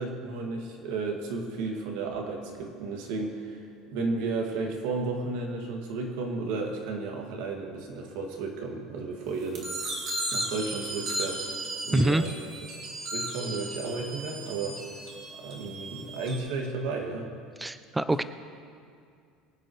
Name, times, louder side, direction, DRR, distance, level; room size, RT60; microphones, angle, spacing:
voice 1, 0.0-3.6 3.9-9.7 10.3-11.6 11.8-12.4 13.1-14.8 15.4-17.3, right 3 dB, 70° right, 1 dB, 2.0 m, -33 dB
sound 1, 9.5-16.4, right 1 dB, 35° right, 2.2 m, -35 dB
voice 2, 11.9-12.2 17.6-18.2, right 1 dB, 5° right, 12 dB, 0.3 m, -25 dB
23.5 x 9.2 x 3.1 m, 2.3 s
cardioid pair, 180°, 0 cm